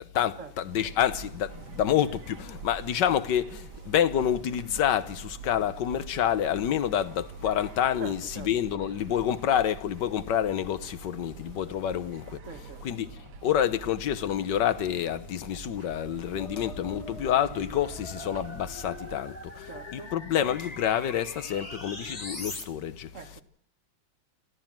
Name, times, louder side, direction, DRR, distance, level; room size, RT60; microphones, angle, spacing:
voice 1, 0.0-12.4 12.8-13.1 13.4-23.3, left 10 dB, 70° left, 1.7 m, -28 dB
sound 1, 0.7-19.2, right 6 dB, 65° right, 1.5 m, -46 dB
voice 2, 8.0-8.5 12.5-12.8 19.7-20.1 23.1-23.4, right 6 dB, 45° right, 1.4 m, -43 dB
sound 2, 16.3-22.6, left 1 dB, 20° left, 2.3 m, -41 dB
25.0 x 15.5 x 7.4 m
omnidirectional pair, 2.0 m